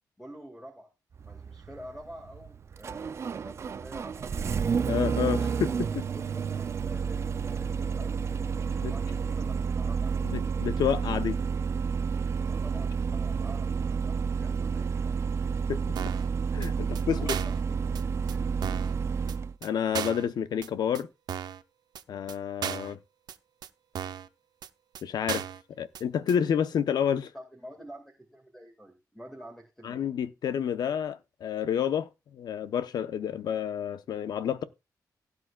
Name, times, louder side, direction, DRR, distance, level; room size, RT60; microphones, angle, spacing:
voice 1, 0.2-0.9 1.2-4.6 6.1-10.4 12.1-15.2 17.1-18.6 27.3-28.0 28.3-30.0, equal, 5° left, 2.0 m, -48 dB
Engine starting, 1.2-19.5, right 6 dB, 40° right, 0.4 m, -30 dB
voice 2, 4.8-6.0 8.8-8.9 10.2-11.4 15.7-15.8 16.5-17.3 19.6-21.1 22.1-23.0 25.0-25.4 25.8-27.3 29.8-34.6, left 8 dB, 85° left, 0.9 m, -29 dB
sound 1, 16.0-16.3 16.6-16.7 17.0-17.1 17.3-17.6 18.0-18.1 18.3-18.4 18.6-18.9 19.3-19.4 19.6-19.7 19.9-20.3 20.6-20.7 20.9-21.0 21.3-21.6 22.0-22.1 22.3-22.4 22.6-22.9 23.3-23.4 23.6-23.7 24.0-24.3 24.6-24.7 24.9-25.0 25.3-25.6 25.9-26.0 26.3-26.4, right 9 dB, 85° right, 0.7 m, -35 dB
17.0 x 8.4 x 2.4 m
wide cardioid pair, 170°, 7 cm